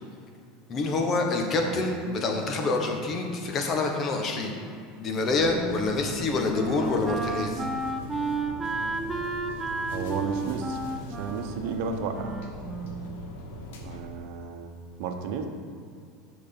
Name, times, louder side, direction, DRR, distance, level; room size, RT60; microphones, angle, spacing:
voice 1, 0.7-4.6 5.0-7.6, left 3 dB, 40° left, 2 dB, 1.4 m, -27 dB
voice 2, 1.5-1.8 9.9-12.4 13.8-14.7 15.0-15.5, right 6 dB, 65° right, 5 dB, 0.9 m, -33 dB
sound 1, 5.3-14.0, left 1 dB, 75° left, 1.3 m, -41 dB
Wind instrument woodwind instrument, 5.5-13.3, right 3 dB, 15° right, 0.8 m, -33 dB
6.7 x 6.0 x 5.4 m, 2.4 s
hypercardioid pair, 95°, 0 cm